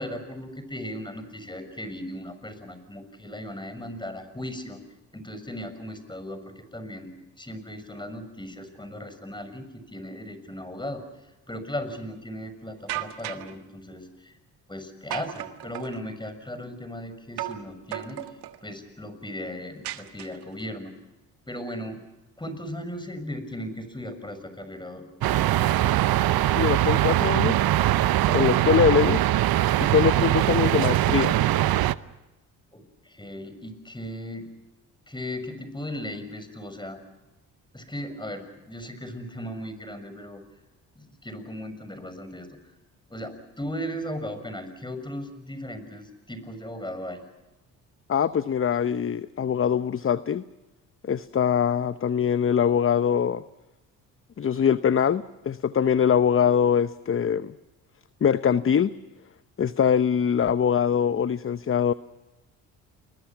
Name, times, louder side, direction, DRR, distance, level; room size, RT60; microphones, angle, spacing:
voice 1, 0.0-4.8 5.1-14.4 14.7-18.2 18.6-20.9 21.5-22.0 22.4-25.9 32.7-34.5 35.1-37.0 37.7-40.4 40.9-42.6 43.1-47.2, equal, 10° left, 9 dB, 6.5 m, -37 dB
sound 1, 12.9-13.5 15.1-16.0 17.4-17.7 17.9-18.6 19.8-20.6, right 14 dB, 80° right, 1.6 m, -35 dB
sound 2, 25.2-31.9, right 14 dB, 65° right, 0.9 m, -22 dB
voice 2, 26.5-27.6 28.3-29.3 29.8-31.4 48.1-50.4 51.0-53.4 54.4-57.5 58.2-58.9 59.6-61.9, left 7 dB, 35° left, 14 dB, 0.8 m, -23 dB
29.5 x 22.0 x 6.0 m, 1.0 s
supercardioid pair, 65°, 39 cm